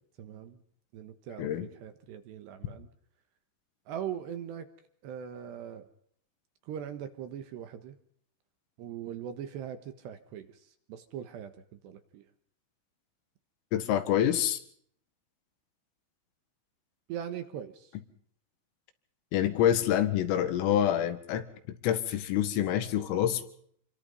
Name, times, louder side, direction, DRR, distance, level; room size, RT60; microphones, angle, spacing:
voice 1, 0.2-0.6 0.9-1.5 1.8-2.9 3.9-4.7 5.0-5.9 6.7-8.0 8.8-10.5 10.9-12.2 17.1-17.9, right 9 dB, 65° right, 9 dB, 3.1 m, -40 dB
voice 2, 1.4-1.7 13.7-14.6 19.3-23.4, left 10 dB, 80° left, 10 dB, 4.4 m, -27 dB
28.5 x 23.0 x 5.5 m, 0.65 s
omnidirectional pair, 5.9 m